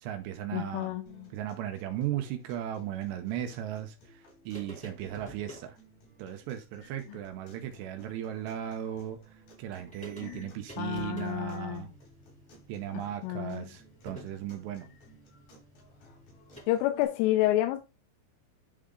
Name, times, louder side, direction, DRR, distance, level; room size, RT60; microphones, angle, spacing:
voice 1, 0.0-1.0 1.3-5.8 6.2-11.9 12.7-14.9, right 11 dB, 80° right, 2.5 m, -36 dB
voice 2, 0.5-1.3 7.1-7.2 10.2-10.5 10.8-11.8 12.9-13.7 16.7-17.8, left 15 dB, 85° left, 3.2 m, -30 dB
sound 1, 1.1-17.1, right 1 dB, 55° left, 5.2 m, -59 dB
sound 2, 4.5-5.7 7.3-7.4 7.7-7.8 9.4-9.5 9.7-16.6, equal, 5° left, 1.5 m, -51 dB
10.5 x 3.8 x 3.7 m
omnidirectional pair, 5.7 m